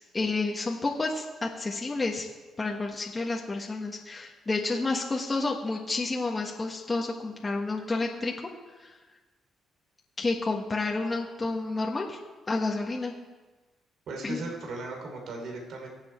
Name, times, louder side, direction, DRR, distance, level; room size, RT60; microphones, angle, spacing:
voice 1, 0.1-2.3 2.6-8.3 8.7-9.0 10.2-12.2 12.5-13.1 14.2-14.4, left 3 dB, 25° left, -1 dB, 1.5 m, -30 dB
voice 2, 14.1-15.9, right 2 dB, 70° right, 2 dB, 3.2 m, -37 dB
23.0 x 8.1 x 4.5 m, 1.3 s
cardioid pair, 90°, 0 cm